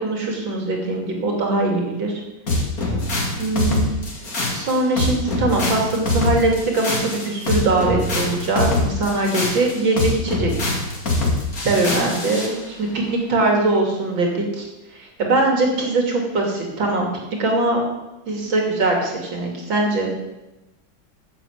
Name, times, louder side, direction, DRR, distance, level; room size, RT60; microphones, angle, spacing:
voice 1, 0.0-2.1 3.4-3.9 4.5-10.7 11.6-14.7 14.9-17.1 17.4-17.8 18.3-20.1, right 2 dB, 75° right, 1 dB, 3.3 m, -21 dB
sound 1, 2.5-12.5, left 2 dB, 45° left, 2.8 m, -23 dB
11.0 x 7.2 x 8.0 m, 0.99 s
omnidirectional pair, 2.1 m